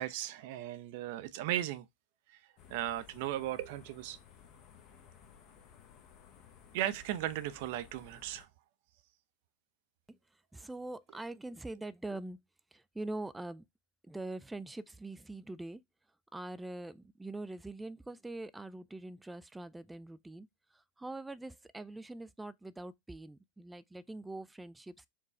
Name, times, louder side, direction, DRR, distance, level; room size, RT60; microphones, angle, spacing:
voice 1, 0.0-1.9 2.3-2.4 2.7-4.2 6.7-8.5, right 13 dB, 60° right, 0.5 m, -36 dB
sound 1, 2.6-8.5, left 7 dB, 45° left, 0.9 m, -58 dB
voice 2, 10.5-12.4 12.7-13.6 14.1-15.8 16.3-25.1, right 2 dB, 10° right, 0.3 m, -43 dB
4.6 x 2.3 x 4.2 m
hypercardioid pair, 95°, 0 cm